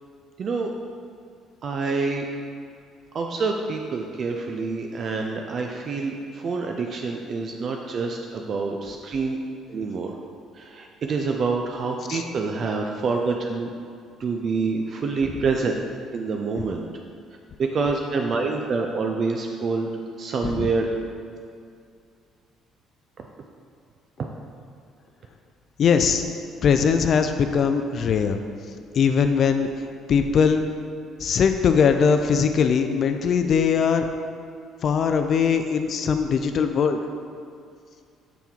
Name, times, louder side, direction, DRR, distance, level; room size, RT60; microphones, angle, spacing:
voice 1, 0.4-0.7 1.6-2.3 3.1-9.4 9.7-10.2 10.6-13.7 14.2-15.7 16.1-16.9 17.6-19.9 20.2-20.9 23.2-23.3, right 4 dB, 50° right, 2 dB, 0.4 m, -27 dB
voice 2, 25.8-26.2 26.6-28.4 29.0-29.7 30.1-30.6 31.2-34.1 34.8-37.0, left 6 dB, 55° left, 7 dB, 0.3 m, -20 dB
7.0 x 3.6 x 4.4 m, 2.3 s
supercardioid pair, 85°, 0 cm